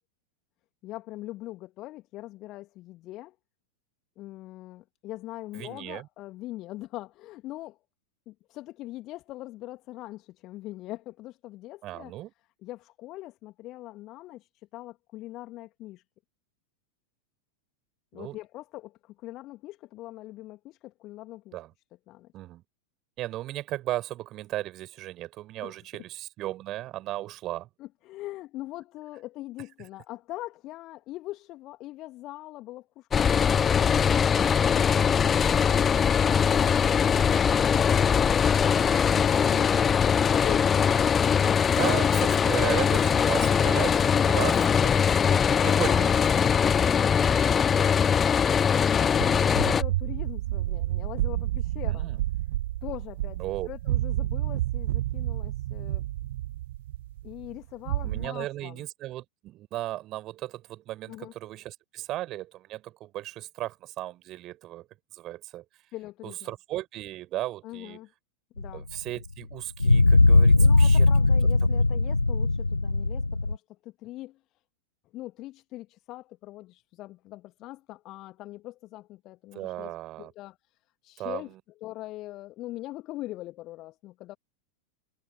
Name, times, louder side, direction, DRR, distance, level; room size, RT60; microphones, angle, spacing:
voice 1, 0.8-3.4 4.2-7.8 8.3-12.1 12.6-16.0 18.1-21.6 22.1-22.3 25.6-25.8 27.8-33.9 48.9-52.1 52.8-53.4 53.7-56.1 57.2-58.9 61.1-61.3 65.9-66.5 67.6-68.1 68.6-68.8 70.5-74.4 75.1-80.6 81.0-81.5 81.8-84.3, left 17 dB, 35° left, 2.1 m, -42 dB
voice 2, 5.5-6.1 11.8-12.3 18.1-18.4 21.5-21.7 22.3-22.6 23.2-27.7 41.8-45.1 45.6-46.3 51.9-52.2 53.4-53.7 58.0-64.9 65.1-65.6 66.2-68.0 68.7-71.1 71.6-71.8 79.5-80.3 81.2-81.4, right 15 dB, 35° right, 5.2 m, -35 dB
sound 1, 33.1-49.8, left 7 dB, 20° left, 0.5 m, -22 dB
sound 2, 49.2-58.3, right 14 dB, 55° right, 0.3 m, -30 dB
sound 3, 68.6-68.7 69.8-73.5, left 2 dB, 80° left, 0.5 m, -19 dB
figure-of-eight pair, 90°, 0 cm